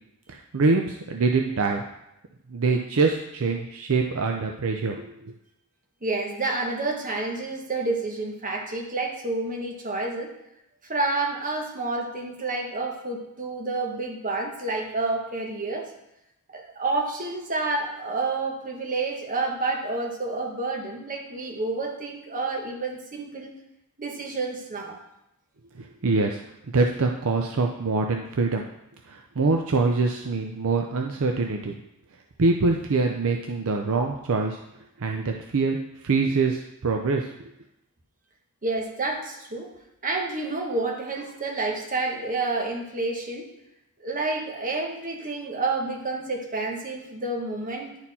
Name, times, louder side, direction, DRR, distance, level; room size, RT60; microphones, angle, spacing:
voice 1, 0.3-1.8 2.5-5.3 25.8-26.4 26.7-28.6 29.1-31.7 32.4-34.6 35.0-35.8 36.0-37.3, right 3 dB, 70° right, 3 dB, 0.6 m, -24 dB
voice 2, 6.0-10.3 10.9-15.9 16.5-23.5 24.0-25.0 38.6-39.7 40.0-43.5 44.0-48.0, right 3 dB, 40° right, 1 dB, 1.3 m, -29 dB
10.5 x 4.3 x 4.2 m, 0.84 s
head